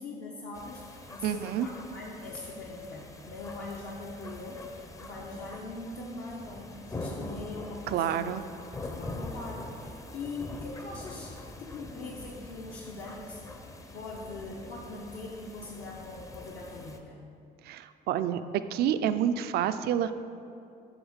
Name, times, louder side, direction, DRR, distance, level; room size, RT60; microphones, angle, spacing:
voice 1, 0.0-8.3 8.8-13.4 13.9-17.2, left 2 dB, 65° left, -3 dB, 0.9 m, -41 dB
sound 1, 0.5-17.0, left 2 dB, 20° left, 0.6 m, -44 dB
voice 2, 1.2-1.7 7.9-8.4 17.6-18.4 18.7-20.1, right 10 dB, 70° right, 11 dB, 0.4 m, -28 dB
8.0 x 3.6 x 6.4 m, 2.7 s
cardioid pair, 110°, 17 cm